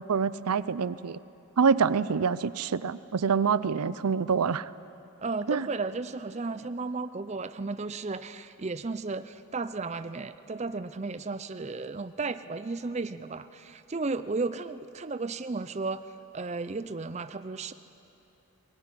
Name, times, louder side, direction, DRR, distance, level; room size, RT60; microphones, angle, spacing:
voice 1, 0.1-1.2 1.6-4.7 5.5-5.7, right 6 dB, 85° right, 17 dB, 0.5 m, -26 dB
voice 2, 5.2-16.1 16.3-17.7, right 3 dB, 30° right, 12 dB, 0.5 m, -34 dB
22.0 x 18.5 x 9.8 m, 3.0 s
head